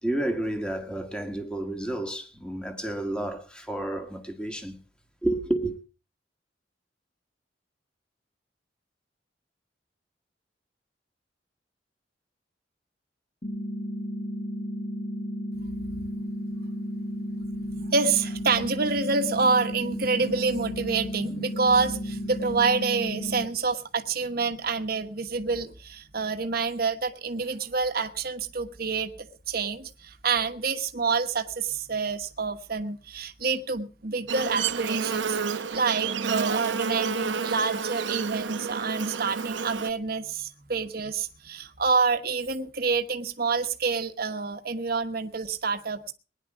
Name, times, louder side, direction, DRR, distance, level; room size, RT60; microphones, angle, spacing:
voice 1, 0.0-4.8 5.2-5.8, right 1 dB, 5° left, 1.8 m, -30 dB
sound 1, 13.4-23.4, equal, 35° left, 1.5 m, -33 dB
voice 2, 17.7-29.1 29.5-46.1, right 4 dB, 55° right, 1.2 m, -27 dB
Buzz, 34.3-39.9, right 6 dB, 90° right, 0.8 m, -30 dB
20.0 x 10.5 x 4.9 m
head